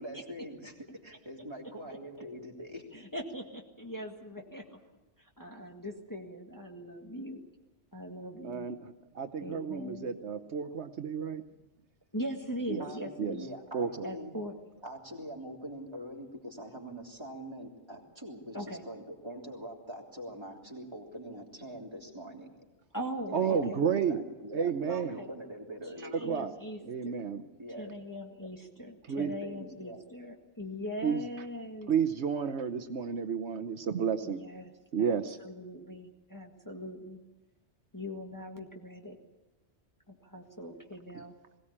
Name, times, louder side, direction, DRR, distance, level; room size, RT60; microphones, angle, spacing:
voice 1, 0.0-2.8 12.8-14.4 14.8-22.5 23.3-26.4 27.6-27.9 29.1-30.0, equal, 25° right, -1 dB, 3.4 m, -44 dB
voice 2, 2.9-4.8 5.2-7.4 7.9-8.7 9.4-10.1 12.1-13.5 14.0-14.5 18.5-18.8 22.9-23.8 24.9-25.3 25.8-27.3 27.8-31.9 34.2-34.7 35.0-37.2 37.9-39.2 40.1-41.3, equal, 15° left, 1 dB, 1.8 m, -41 dB
voice 3, 8.4-8.8 9.1-11.4 12.7-12.8 13.2-13.3 13.7-14.1 23.3-24.2 24.5-25.2 26.3-26.5 26.8-27.4 29.1-29.3 31.0-31.2 31.9-34.4 34.9-35.4, right 7 dB, 75° right, 8 dB, 1.2 m, -31 dB
21.5 x 17.5 x 8.7 m, 1.1 s
omnidirectional pair, 1.2 m